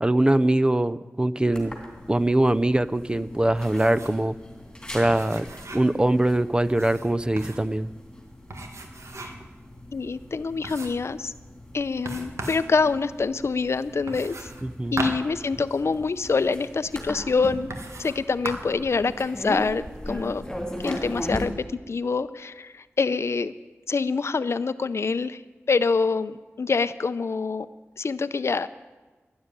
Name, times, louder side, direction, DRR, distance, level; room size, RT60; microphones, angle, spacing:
voice 1, 0.0-1.7 2.1-4.3 4.9-5.5 5.7-7.9 14.6-15.0, right 1 dB, 20° right, 14 dB, 0.5 m, -22 dB
sound 1, 1.5-21.4, left 1 dB, 15° left, 3.3 m, -39 dB
sound 2, 3.5-4.3 4.5-4.6 5.0-6.0 6.7-7.7 8.5-9.5 10.0-10.1 10.6-11.1 12.0-12.7 14.1-16.1 16.9-17.0 17.7-18.2 18.4-18.8, right 2 dB, 85° right, 1.7 m, -37 dB
voice 2, 9.9-11.3 11.7-14.5 14.9-17.7 18.0-20.4 20.8-21.5 21.9-23.5 23.9-25.4 25.7-27.7 28.0-28.7, left 4 dB, 65° left, 12 dB, 0.5 m, -25 dB
12.5 x 10.5 x 9.7 m, 1.3 s
wide cardioid pair, 90°, 5 cm